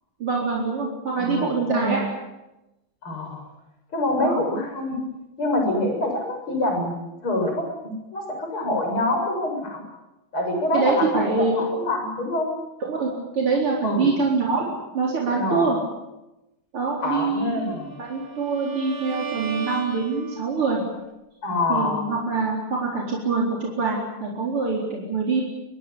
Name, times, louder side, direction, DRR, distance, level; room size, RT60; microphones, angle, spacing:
voice 1, 0.2-2.0 4.2-4.4 10.7-11.7 12.8-15.8 16.7-17.7 18.0-20.8 21.7-25.4, right 4 dB, 85° right, -2 dB, 5.1 m, -25 dB
voice 2, 1.1-2.1 3.0-3.4 3.9-5.0 5.4-7.0 7.2-9.8 10.3-11.2 11.5-12.5 13.8-14.1 15.3-15.7 17.0-17.9 21.4-22.0, left 1 dB, 75° left, 2 dB, 8.3 m, -25 dB
Bowed string instrument, 17.6-20.7, right 5 dB, 40° right, 3.3 m, -36 dB
25.5 x 20.0 x 8.7 m, 0.98 s
omnidirectional pair, 2.3 m